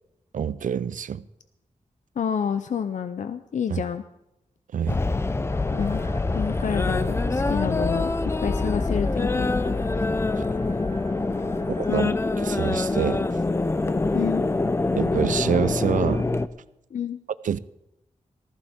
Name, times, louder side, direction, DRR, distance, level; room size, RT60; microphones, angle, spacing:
voice 1, 0.3-1.2 3.7-3.8 4.7-5.0 11.8-12.1 12.4-13.3 15.0-16.3 17.4-17.6, right 8 dB, 75° right, 0.5 m, -26 dB
voice 2, 2.2-4.0 5.7-6.0 6.3-8.1 8.4-9.5 11.9-12.2 14.1-14.4 16.9-17.2, left 7 dB, 70° left, 0.6 m, -28 dB
sound 1, 4.9-16.5, left 3 dB, 20° left, 0.5 m, -25 dB
sound 2, 5.5-12.0, left 1 dB, 45° left, 3.3 m, -44 dB
19.0 x 14.5 x 3.7 m
wide cardioid pair, 165°, 13 cm